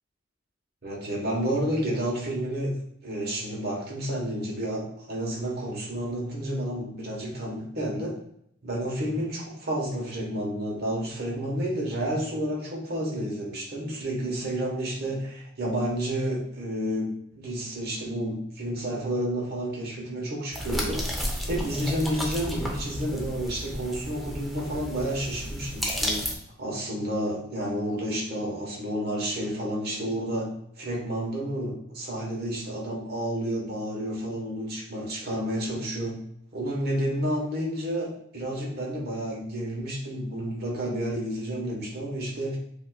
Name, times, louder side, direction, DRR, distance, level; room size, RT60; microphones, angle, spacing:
voice 1, 0.8-2.7 3.0-8.2 8.6-21.0 21.4-26.2 26.6-30.5 30.8-36.2 36.5-42.6, right 1 dB, 50° right, -2 dB, 1.2 m, -30 dB
sound 1, 20.5-26.3, equal, ahead, 0.6 m, -32 dB
7.3 x 2.8 x 2.3 m, 0.73 s
head